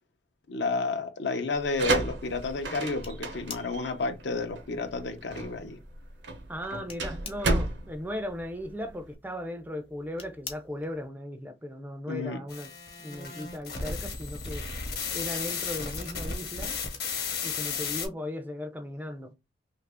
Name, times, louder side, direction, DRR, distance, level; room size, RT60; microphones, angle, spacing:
voice 1, 0.5-5.8 12.1-12.4, left 3 dB, 70° left, 0.6 m, -31 dB
sound 1, 1.5-9.1, right 2 dB, 75° right, 0.6 m, -32 dB
sound 2, 3.0-11.1, left 5 dB, 30° left, 0.6 m, -49 dB
voice 2, 6.5-12.7 13.0-14.7 15.1-16.8 17.4-19.4, left 1 dB, 10° right, 0.4 m, -37 dB
sound 3, 12.5-18.1, left 5 dB, 55° left, 1.0 m, -34 dB
2.8 x 2.5 x 3.3 m
head